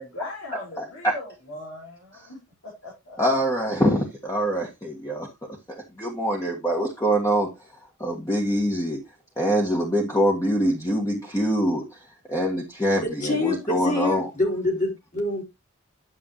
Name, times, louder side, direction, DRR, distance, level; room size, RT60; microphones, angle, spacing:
voice 1, 0.0-2.4 2.6-3.2, left 2 dB, 90° left, 5.0 m, -39 dB
voice 2, 0.8-1.1 3.2-5.3 6.0-7.5 8.0-9.0 9.4-12.0 12.3-14.3, equal, 15° left, 1.7 m, -24 dB
voice 3, 13.0-15.4, left 2 dB, 40° left, 3.8 m, -26 dB
11.0 x 7.3 x 3.1 m
head